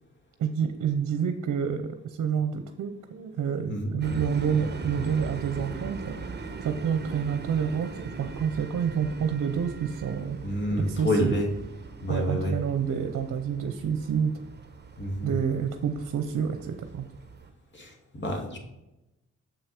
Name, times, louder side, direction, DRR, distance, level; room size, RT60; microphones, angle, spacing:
voice 1, 0.4-10.4 10.8-11.3 12.1-14.3 15.2-17.1, right 7 dB, 65° right, 7 dB, 0.8 m, -28 dB
sound 1, 4.0-17.5, right 4 dB, 35° right, 1.0 m, -40 dB
voice 2, 10.4-11.5 12.0-12.5 15.0-15.3 17.7-18.6, equal, 35° left, 1 dB, 2.5 m, -28 dB
7.3 x 5.6 x 4.5 m, 0.91 s
supercardioid pair, 55°, 31 cm